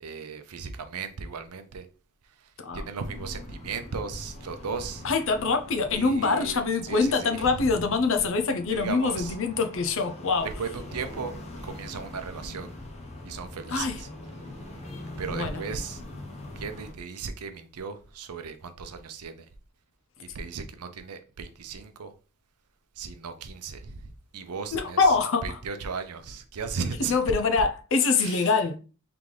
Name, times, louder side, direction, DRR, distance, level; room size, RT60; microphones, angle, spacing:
voice 1, 0.0-1.9 2.4-5.1 5.9-7.9 8.7-9.4 10.4-11.4 11.6-12.7 13.2-14.1 15.2-16.0 16.6-19.5 20.2-22.1 23.0-25.2 25.4-27.1 28.2-28.5, right 5 dB, 85° right, 0.6 m, -36 dB
sound 1, 3.0-16.9, left 1 dB, 30° left, 0.8 m, -43 dB
voice 2, 5.0-10.5 13.7-14.0 15.3-15.6 24.7-25.5 27.1-28.8, left 4 dB, 60° left, 0.6 m, -24 dB
3.8 x 3.4 x 3.2 m
head